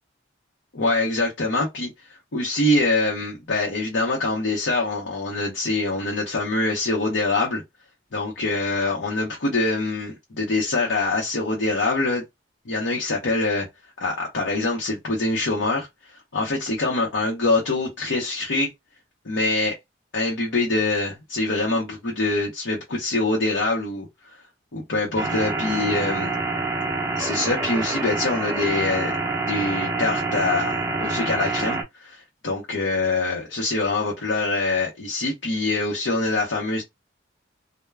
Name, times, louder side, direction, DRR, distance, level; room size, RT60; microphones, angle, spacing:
voice 1, 0.7-1.9 2.3-7.6 8.1-12.2 12.7-13.7 14.0-15.9 16.3-18.7 19.2-19.7 20.1-24.1 24.7-26.3 27.2-29.2 29.5-36.8, left 2 dB, 75° left, 0.8 m, -24 dB
sound 1, 25.2-31.8, right 3 dB, 15° right, 0.5 m, -26 dB
2.3 x 2.1 x 3.2 m
head